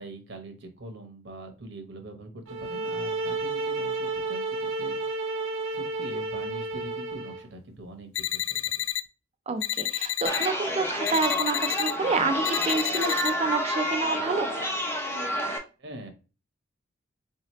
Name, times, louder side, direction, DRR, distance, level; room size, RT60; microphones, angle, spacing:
voice 1, 0.0-8.9 15.8-16.1, right 1 dB, 65° right, 5 dB, 1.0 m, -43 dB
sound 1, 2.5-7.5, right 3 dB, 85° right, 0.6 m, -31 dB
sound 2, 8.2-9.0 9.6-10.5 11.1-11.9 12.4-13.3, left 13 dB, 70° left, 0.3 m, -29 dB
voice 2, 9.5-14.5, right 4 dB, 30° right, 8 dB, 0.5 m, -28 dB
Chatter, 10.2-15.6, equal, 15° left, 0.7 m, -29 dB
4.0 x 2.8 x 3.0 m, 0.32 s
head